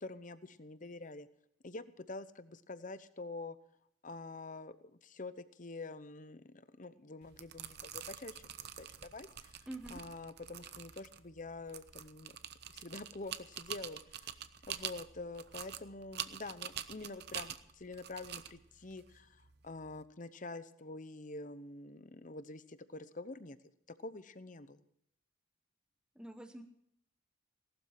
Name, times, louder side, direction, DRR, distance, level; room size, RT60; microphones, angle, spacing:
voice 1, 0.0-1.3 1.6-3.6 4.0-9.7 9.9-12.4 12.7-14.3 14.7-23.6 24.0-24.8, left 2 dB, 40° left, 13 dB, 0.8 m, -47 dB
sound 1, 7.2-20.0, right 10 dB, 50° right, 0.8 m, -46 dB
voice 2, 9.7-10.0 26.1-26.6, right 1 dB, 5° right, 5 dB, 1.1 m, -45 dB
18.0 x 12.5 x 5.8 m, 0.74 s
head